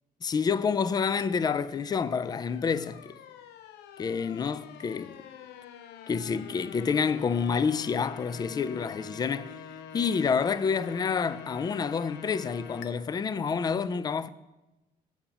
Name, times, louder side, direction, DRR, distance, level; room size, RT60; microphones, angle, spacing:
voice 1, 0.2-3.2 4.0-5.2 6.1-9.5 9.9-14.3, left 6 dB, 25° left, 0.4 m, -28 dB
sound 1, 1.2-12.9, left 8 dB, 80° left, 0.6 m, -46 dB
7.2 x 5.7 x 7.0 m
cardioid pair, 110°, 17 cm